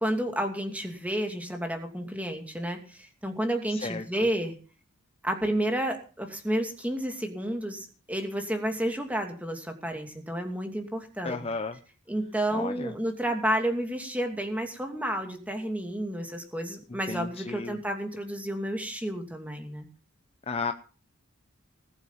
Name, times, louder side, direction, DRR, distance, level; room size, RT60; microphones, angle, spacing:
voice 1, 0.0-4.5 5.2-11.4 12.1-19.8, right 1 dB, 5° right, 4 dB, 2.6 m, -31 dB
voice 2, 3.7-4.0 11.2-11.8 12.5-12.9 17.1-17.8 20.5-20.7, left 4 dB, 25° left, 7 dB, 0.7 m, -33 dB
20.0 x 8.3 x 7.2 m, 0.39 s
head